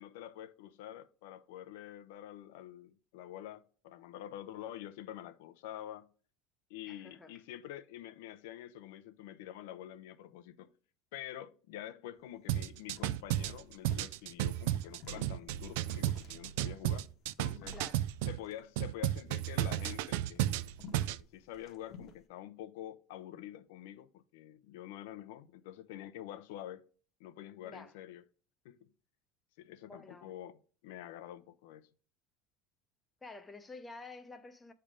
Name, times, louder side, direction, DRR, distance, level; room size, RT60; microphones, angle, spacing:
voice 1, 0.0-6.1 6.7-10.7 11.1-17.1 17.4-17.8 18.3-20.7 21.3-26.8 27.2-28.2 28.6-28.9 29.6-31.9, left 12 dB, 90° left, 0.6 m, -47 dB
voice 2, 6.9-7.3 17.7-18.0 27.6-27.9 29.9-30.3 33.2-34.7, left 3 dB, 10° left, 0.6 m, -50 dB
sound 1, 12.2-12.3 12.5-12.7 12.9-22.2, left 5 dB, 35° left, 0.9 m, -55 dB
sound 2, 12.5-18.4 18.8-21.2, right 13 dB, 80° right, 0.3 m, -33 dB
8.7 x 3.3 x 5.0 m
cardioid pair, 170°, 0 cm